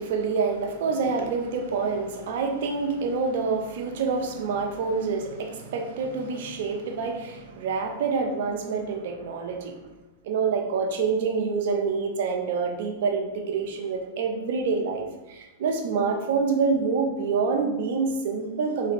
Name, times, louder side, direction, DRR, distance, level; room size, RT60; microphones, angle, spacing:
voice 1, 0.0-9.7 10.2-18.9, right 5 dB, 65° right, 3 dB, 0.8 m, -27 dB
3.9 x 3.1 x 4.3 m, 1.1 s
hypercardioid pair, 120°, 0 cm